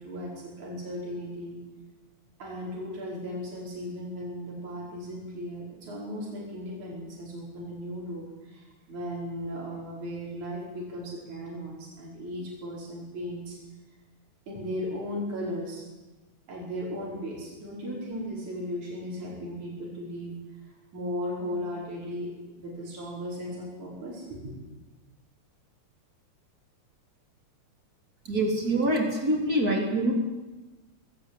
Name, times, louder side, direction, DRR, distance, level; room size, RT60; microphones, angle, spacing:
voice 1, 0.0-1.6 2.4-13.6 14.5-15.8 16.5-20.3 20.9-22.3 22.6-24.5, equal, 75° right, -4 dB, 6.8 m, -36 dB
voice 2, 28.3-30.1, right 1 dB, 30° right, 1 dB, 3.6 m, -25 dB
20.5 x 17.0 x 8.6 m, 1.1 s
omnidirectional pair, 3.4 m